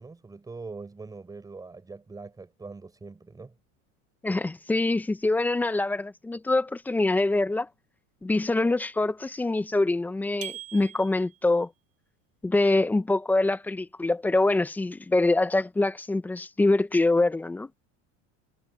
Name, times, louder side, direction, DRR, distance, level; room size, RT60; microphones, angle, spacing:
voice 1, 0.0-3.5, right 3 dB, 10° right, 4.2 m, -42 dB
voice 2, 4.2-7.7 8.2-11.7 12.4-17.7, left 2 dB, 5° left, 0.4 m, -24 dB
sound 1, 10.4-11.5, right 15 dB, 40° right, 6.6 m, -41 dB
supercardioid pair, 155°, 35 cm